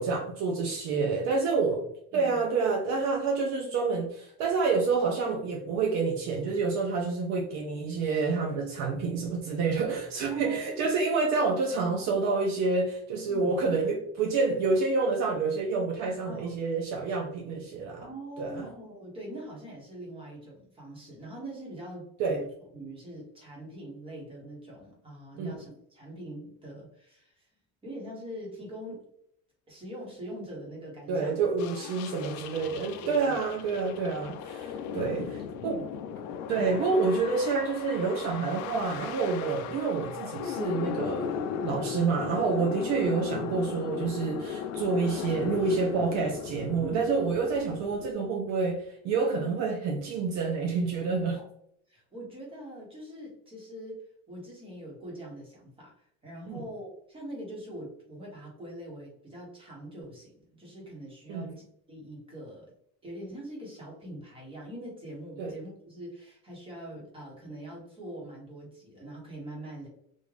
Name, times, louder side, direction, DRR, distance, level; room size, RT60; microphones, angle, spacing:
voice 1, 0.0-1.8 2.1-18.1 18.4-18.6 22.2-22.4 25.4-25.6 31.1-35.8 36.5-41.4 41.6-51.4 56.5-56.6 61.3-61.5 65.4-65.5, right 4 dB, 60° right, 1 dB, 0.7 m, -28 dB
voice 2, 1.5-1.8 2.1-2.5 10.3-10.7 12.0-12.1 13.3-13.6 16.3-16.6 18.0-27.5 27.8-29.1 29.7-31.4 32.0-32.3 33.0-33.4 35.6-36.0 46.8-47.1 51.3-51.4 51.9-62.7 63.0-69.9, right 1 dB, 15° right, -3 dB, 1.3 m, -43 dB
sound 1, 31.6-48.1, left 7 dB, 70° left, 0.5 m, -37 dB
3.6 x 2.5 x 3.3 m, 0.71 s
cardioid pair, 170°, 31 cm